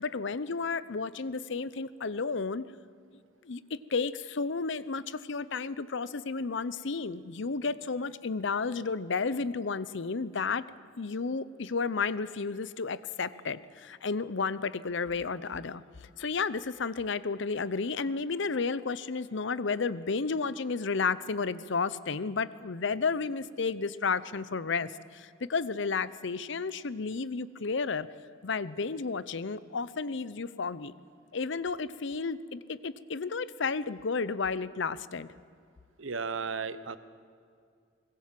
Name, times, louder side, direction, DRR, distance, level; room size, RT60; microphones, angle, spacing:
voice 1, 0.0-2.6 3.4-10.7 11.0-15.8 16.2-28.1 28.4-30.9 31.3-35.3, left 4 dB, 65° left, 16 dB, 0.7 m, -32 dB
voice 2, 36.0-37.0, right 5 dB, 80° right, 13 dB, 1.0 m, -34 dB
22.0 x 20.0 x 7.6 m, 2.3 s
head